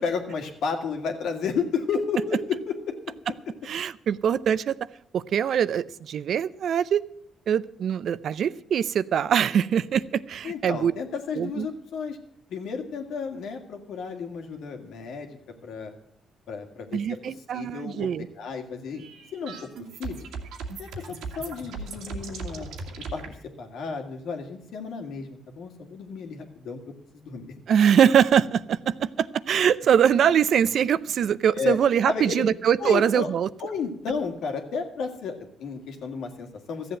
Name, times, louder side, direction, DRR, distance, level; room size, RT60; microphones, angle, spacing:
voice 1, 0.0-3.0 3.5-3.6 10.4-12.2 12.5-15.9 16.5-18.1 18.4-19.1 19.3-19.7 20.0-20.3 20.8-22.7 23.1-27.5 31.6-31.8 32.0-32.5 32.8-33.3 33.6-37.0, left 5 dB, 75° left, 4 dB, 2.1 m, -32 dB
voice 2, 3.6-4.7 5.1-7.0 7.5-10.9 11.4-11.7 16.9-18.3 27.7-33.5, right 8 dB, 65° right, 17 dB, 0.5 m, -23 dB
sound 1, 18.9-23.3, right 4 dB, 90° right, 2.1 m, -37 dB
14.0 x 7.8 x 7.7 m, 0.77 s
cardioid pair, 90°, 0 cm